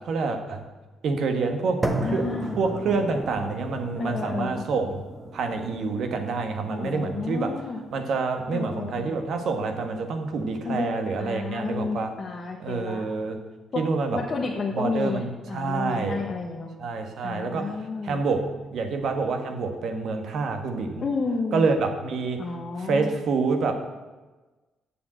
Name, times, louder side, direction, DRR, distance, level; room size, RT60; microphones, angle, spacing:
voice 1, 0.0-0.7 1.0-5.0 5.3-7.6 7.9-12.1 12.6-13.4 13.7-14.2 14.7-16.4 16.8-17.8 18.0-21.0 21.5-22.5 22.8-23.7, right 4 dB, 65° right, 6 dB, 1.4 m, -27 dB
sound 1, 1.8-9.9, right 1 dB, 15° right, 1.3 m, -35 dB
voice 2, 2.0-2.6 4.0-4.6 6.7-7.8 8.5-9.2 10.6-13.0 13.7-13.8 14.1-16.7 17.2-18.2 21.0-21.7 22.4-23.1, left 4 dB, 40° left, -1 dB, 1.2 m, -31 dB
7.5 x 6.9 x 7.7 m, 1.2 s
cardioid pair, 90°, 0 cm